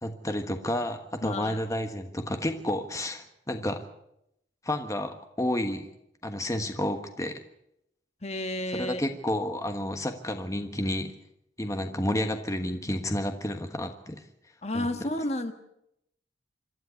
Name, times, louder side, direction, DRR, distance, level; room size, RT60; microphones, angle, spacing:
voice 1, 0.0-3.8 4.6-5.9 6.2-7.4 8.7-11.1 11.6-14.2 14.7-15.1, left 1 dB, 15° left, 6 dB, 1.3 m, -31 dB
voice 2, 1.2-1.6 8.2-9.0 14.6-15.5, left 1 dB, 35° left, 8 dB, 1.4 m, -31 dB
26.5 x 12.5 x 8.3 m, 0.79 s
head